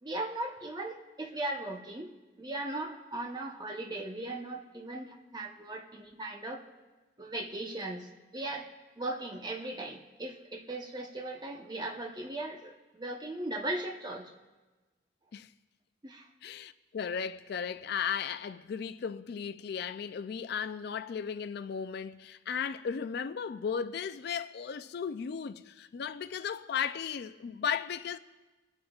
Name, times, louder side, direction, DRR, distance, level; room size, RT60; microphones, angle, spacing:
voice 1, 0.0-6.6 7.2-14.3 16.0-16.3, right 2 dB, 20° right, 0.9 m, -38 dB
voice 2, 16.4-28.2, left 7 dB, 60° left, 0.3 m, -35 dB
29.0 x 9.6 x 2.4 m
head